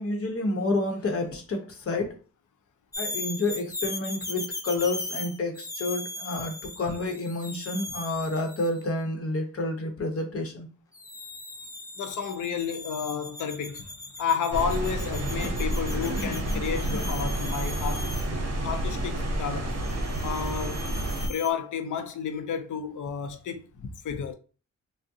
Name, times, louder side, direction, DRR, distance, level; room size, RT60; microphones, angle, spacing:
voice 1, 0.0-2.2 3.0-10.7 15.3-16.5 16.9-17.1, left 2 dB, 45° left, 0.8 m, -30 dB
sound 1, 2.9-8.8 10.9-18.3 19.8-21.5, left 2 dB, 10° left, 0.4 m, -39 dB
voice 2, 12.0-13.9 14.2-18.1 18.6-19.8 20.2-20.8 21.3-24.3, left 7 dB, 75° left, 0.5 m, -31 dB
sound 2, 14.5-21.3, right 1 dB, 55° right, 0.7 m, -30 dB
3.5 x 2.0 x 2.7 m
wide cardioid pair, 110°, 31 cm